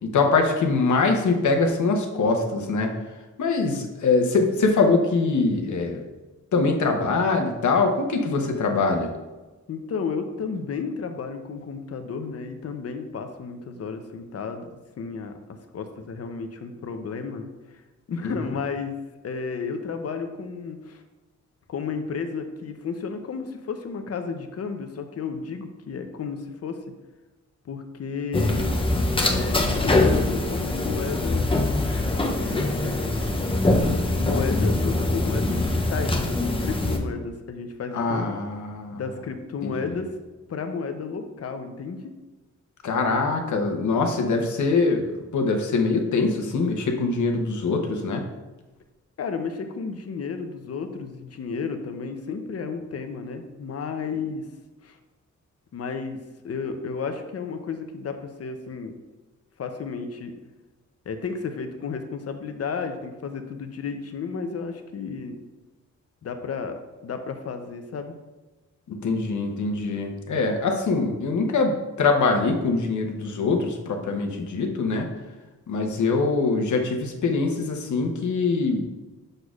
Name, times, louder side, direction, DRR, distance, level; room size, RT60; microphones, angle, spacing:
voice 1, 0.0-2.9 3.4-6.0 6.5-9.1 37.9-39.0 39.6-39.9 42.8-45.1 45.3-48.2 68.9-75.1 75.7-78.8, left 3 dB, 85° left, 3 dB, 0.9 m, -23 dB
voice 2, 9.7-14.7 15.0-15.3 15.7-17.5 18.1-19.0 19.2-21.0 21.7-26.8 27.7-28.8 29.2-31.5 32.3-33.3 34.2-38.3 38.9-40.1 40.5-42.0 49.2-54.4 54.8-55.0 55.7-56.2 56.4-58.9 59.6-60.3 61.1-65.4 66.2-68.2, left 5 dB, 55° left, 7 dB, 0.6 m, -32 dB
sound 1, 28.3-37.0, left 2 dB, 20° left, 0.6 m, -23 dB
6.5 x 6.2 x 2.4 m, 1.2 s
wide cardioid pair, 145°, 29 cm